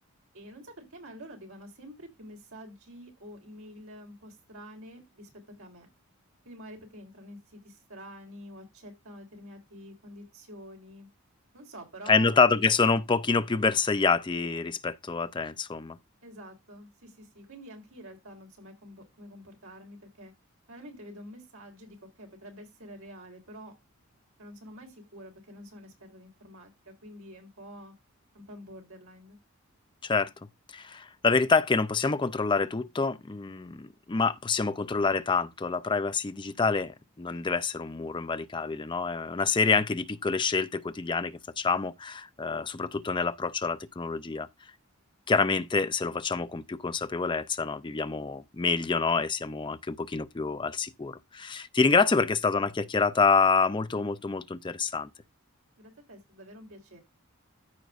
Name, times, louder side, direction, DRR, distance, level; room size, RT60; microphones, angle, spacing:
voice 1, 0.3-5.3 5.6-5.9 6.4-11.1 11.5-12.3 16.2-20.3 20.7-23.7 24.4-27.9 28.3-29.4 55.8-57.0, equal, 65° right, 3.4 m, -47 dB
voice 2, 12.1-16.0 30.0-30.3 30.7-44.5 45.3-55.1, left 4 dB, 20° left, 0.4 m, -27 dB
14.0 x 5.1 x 2.4 m
head